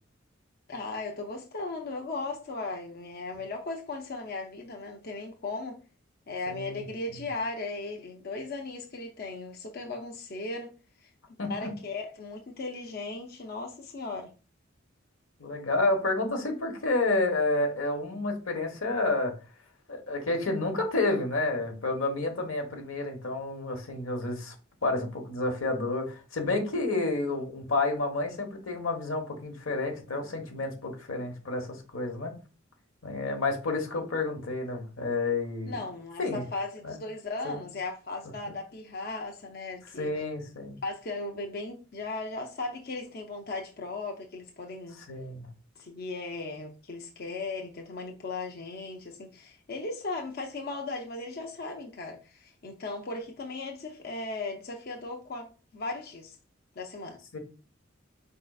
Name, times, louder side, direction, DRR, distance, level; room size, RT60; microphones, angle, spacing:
voice 1, 0.7-5.8 6.3-10.7 11.0-11.1 11.5-14.3 35.7-40.1 40.8-45.0 45.8-56.4 56.8-57.4, left 3 dB, 50° left, 0.6 m, -37 dB
voice 2, 6.5-6.8 11.4-11.7 15.4-19.3 19.9-24.5 24.8-32.3 33.0-35.7 36.2-36.4 36.8-36.9 37.4-37.6 38.5-38.6 40.0-40.8 45.1-45.5 57.3-57.4, left 2 dB, 90° left, 1.2 m, -30 dB
5.0 x 3.8 x 2.3 m
head